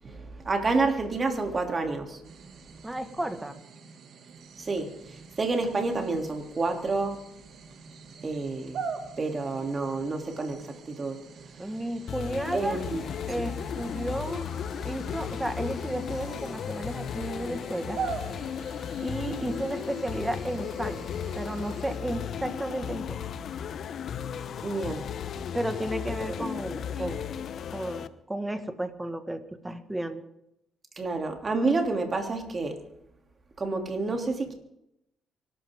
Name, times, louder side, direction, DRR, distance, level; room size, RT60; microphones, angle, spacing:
voice 1, 0.0-2.2 4.6-7.2 8.2-8.8 9.2-11.2 11.5-11.8 12.5-13.4 24.6-25.1 26.4-26.5 31.0-32.8 33.6-34.5, right 3 dB, 35° right, 3 dB, 3.1 m, -29 dB
sound 1, 2.2-22.0, right 5 dB, 65° right, 2.3 m, -44 dB
voice 2, 2.8-3.6 11.6-12.8 13.3-14.5 14.8-18.0 19.0-21.1 21.4-23.2 25.5-27.3 27.7-30.2, right 1 dB, 10° right, 8 dB, 1.8 m, -33 dB
sound 2, 12.1-28.1, left 8 dB, 65° left, 0.9 m, -35 dB
24.5 x 12.5 x 3.8 m, 0.81 s
cardioid pair, 90°, 0 cm